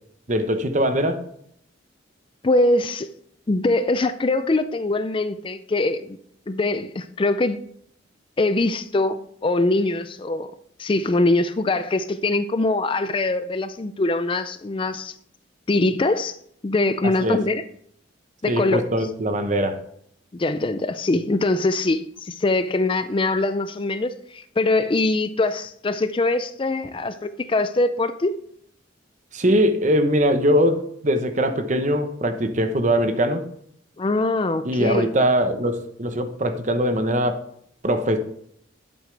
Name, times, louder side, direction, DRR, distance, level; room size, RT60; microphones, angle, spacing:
voice 1, 0.3-1.2 17.2-17.4 18.5-19.8 29.3-33.5 34.6-37.4 37.8-38.2, equal, 40° right, 8 dB, 0.9 m, -21 dB
voice 2, 2.4-3.1 3.5-6.2 6.5-7.6 8.4-10.5 10.8-15.1 15.7-16.4 16.6-17.6 18.4-18.8 20.3-28.4 34.0-35.1, left 2 dB, 25° left, 11 dB, 0.4 m, -23 dB
11.5 x 8.0 x 3.3 m, 0.67 s
head